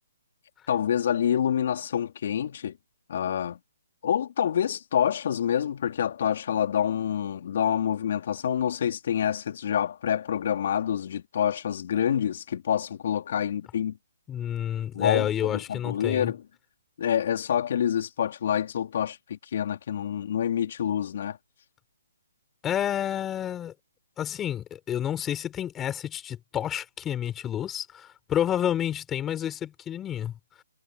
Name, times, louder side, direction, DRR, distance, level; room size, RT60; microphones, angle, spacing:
voice 1, 0.7-2.8 3.1-3.6 4.0-14.0 14.9-16.4 17.0-21.4, left 9 dB, 50° left, 3.7 m, -27 dB
voice 2, 14.3-16.3 22.6-23.7 24.2-30.3, left 10 dB, 15° left, 4.6 m, -29 dB
hypercardioid pair, 150°, 0 cm